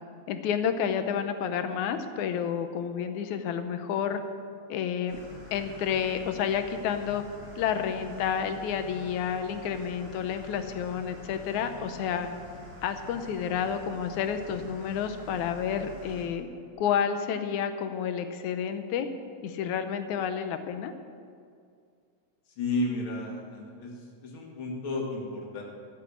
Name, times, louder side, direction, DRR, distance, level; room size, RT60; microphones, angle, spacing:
voice 1, 0.3-4.2 4.7-5.2 5.5-7.2 7.6-12.3 12.8-16.5 16.8-19.1 19.4-20.9, left 8 dB, 80° left, 8 dB, 2.2 m, -30 dB
sound 1, 5.1-16.2, left 1 dB, 45° right, 4.9 m, -47 dB
voice 2, 22.6-23.9 24.2-25.6, left 2 dB, 45° left, -2 dB, 2.7 m, -32 dB
13.5 x 7.5 x 8.5 m, 2.3 s
omnidirectional pair, 3.3 m